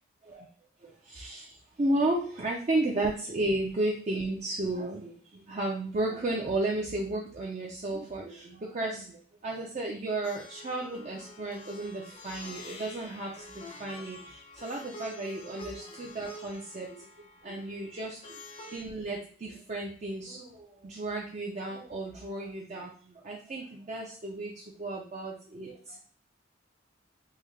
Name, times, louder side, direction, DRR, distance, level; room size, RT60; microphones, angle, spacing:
voice 1, 0.8-17.1 17.4-18.4 18.7-26.0, right 2 dB, 40° right, -1 dB, 0.5 m, -33 dB
Plucked string instrument, 10.2-18.8, left 1 dB, 30° left, 0.6 m, -48 dB
3.6 x 2.6 x 3.2 m, 0.43 s
head